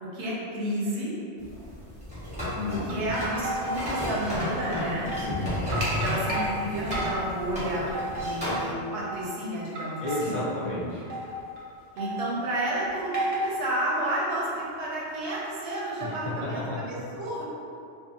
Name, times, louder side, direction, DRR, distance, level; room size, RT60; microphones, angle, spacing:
voice 1, 0.0-1.1 2.7-5.1 6.0-10.5 11.9-17.4, right 1 dB, 85° right, -6 dB, 1.0 m, -31 dB
sound 1, 1.4-8.7, equal, 10° right, 0.7 m, -32 dB
voice 2, 2.5-3.1 5.3-5.6 10.0-11.0 16.0-16.1 16.4-16.8, left 2 dB, 45° left, -11 dB, 0.5 m, -32 dB
sound 2, 2.6-4.2 4.5-4.6 4.9-5.4 5.7-6.5 6.9-7.4 7.8-8.7 9.1-9.3 9.7-10.5 11.0-11.6 12.0-12.4 13.1-13.7 14.0-14.3 15.0-15.4 16.1-16.2, right 1 dB, 45° right, 0.7 m, -33 dB
2.6 x 2.4 x 2.7 m, 2.4 s
omnidirectional pair, 1.1 m